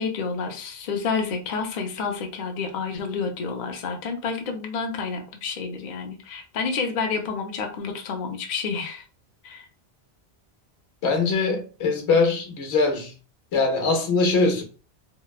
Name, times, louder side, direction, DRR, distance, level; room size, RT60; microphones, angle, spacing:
voice 1, 0.0-9.0 9.4-9.7, left 5 dB, 55° left, 0.5 m, -29 dB
voice 2, 11.0-13.1 13.5-14.6, left 3 dB, 90° left, 1.0 m, -22 dB
2.8 x 2.1 x 2.3 m
omnidirectional pair, 1.1 m